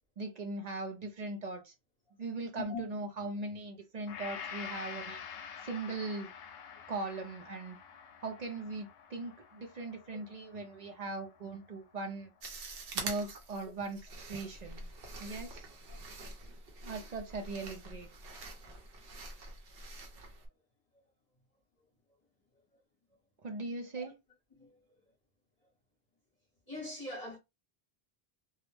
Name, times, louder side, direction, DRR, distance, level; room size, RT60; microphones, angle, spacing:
voice 1, 0.2-1.7 2.2-5.2 5.6-6.3 6.9-7.8 8.2-12.3 12.9-14.8 15.2-15.7 16.8-18.1 23.4-24.2, right 3 dB, 50° right, 0.6 m, -39 dB
Gong, 4.1-12.4 12.8-12.9, left 7 dB, 70° left, 0.8 m, -48 dB
sound 1, 12.4-20.5, right 3 dB, 65° right, 0.9 m, -45 dB
voice 2, 26.7-27.4, left 2 dB, 40° left, 1.0 m, -42 dB
2.3 x 2.1 x 3.2 m
omnidirectional pair, 1.1 m